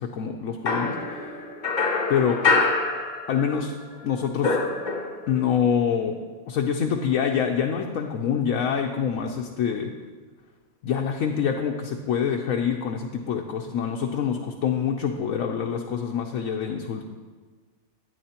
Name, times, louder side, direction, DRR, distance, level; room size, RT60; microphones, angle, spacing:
voice 1, 0.0-1.3 2.1-2.4 3.3-3.7 4.0-4.6 5.3-6.2 6.5-9.9 10.8-17.1, left 7 dB, 75° left, 1 dB, 1.1 m, -26 dB
sound 1, 0.7-3.7 3.9-5.4, left 3 dB, 40° left, 0.8 m, -25 dB
12.0 x 9.4 x 2.9 m, 1.4 s
omnidirectional pair, 1.4 m